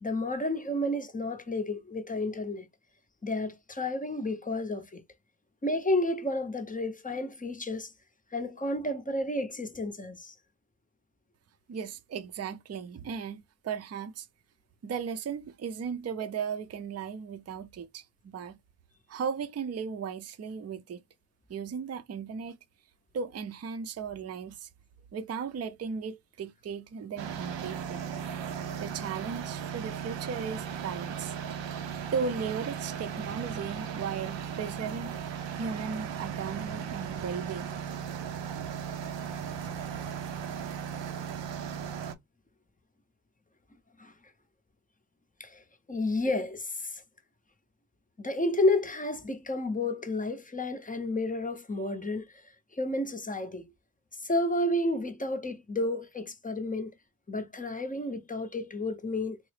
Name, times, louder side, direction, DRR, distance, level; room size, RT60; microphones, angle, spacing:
voice 1, 0.0-2.7 3.2-5.0 5.6-7.9 8.3-10.3 44.0-44.1 45.4-45.6 45.9-47.0 48.2-52.4 52.7-53.7 54.2-56.9 57.3-59.4, left 1 dB, 20° left, 0.6 m, -31 dB
voice 2, 11.7-14.3 14.8-18.6 19.1-21.0 21.5-22.5 23.1-24.7 25.1-28.0 28.8-31.3 32.1-35.1 35.6-37.7, right 6 dB, 35° right, 0.5 m, -36 dB
sound 1, 27.2-42.1, right 7 dB, 80° right, 0.6 m, -37 dB
3.8 x 2.0 x 3.1 m
cardioid pair, 85°, 44 cm